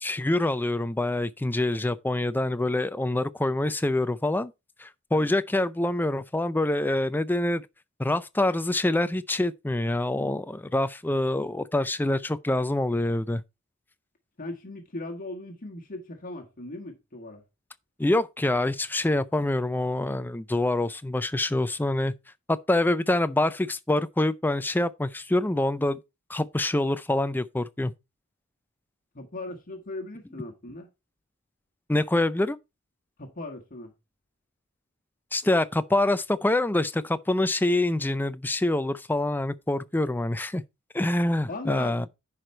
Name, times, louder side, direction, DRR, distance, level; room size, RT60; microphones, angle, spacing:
voice 1, 0.0-4.5 4.8-7.7 8.0-13.4 18.0-22.1 22.5-26.0 26.3-27.9 31.9-32.6 35.3-40.6 40.9-42.1, left 1 dB, 10° left, 0.4 m, -26 dB
voice 2, 14.4-17.4 29.1-30.9 33.2-33.9 41.5-42.1, left 2 dB, 40° left, 1.6 m, -38 dB
10.5 x 5.0 x 4.3 m
head